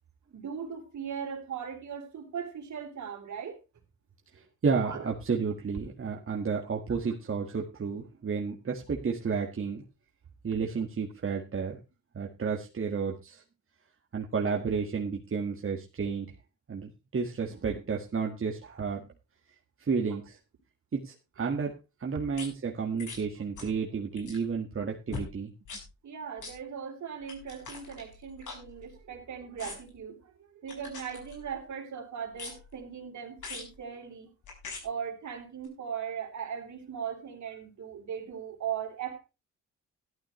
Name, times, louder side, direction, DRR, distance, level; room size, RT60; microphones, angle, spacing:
voice 1, 0.3-3.6 4.8-5.1 26.0-30.3 30.6-34.3 34.8-39.2, right 7 dB, 65° right, 1 dB, 3.8 m, -38 dB
voice 2, 4.3-9.8 10.4-11.8 12.1-13.4 14.1-16.3 16.7-19.0 19.8-20.4 20.9-25.5, right 5 dB, 45° right, 0 dB, 1.8 m, -32 dB
sound 1, 22.3-22.5 23.0-23.2 23.5-23.8 24.1-24.5 25.1-25.3 25.6-25.8 26.4-26.5 27.2-29.1 29.6-30.0 30.7-31.6 32.3-32.8 33.4-33.7 34.4-34.8 35.6-35.7, left 4 dB, 70° left, 5.7 m, -43 dB
14.0 x 12.0 x 3.2 m, 0.29 s
cardioid pair, 85°, 31 cm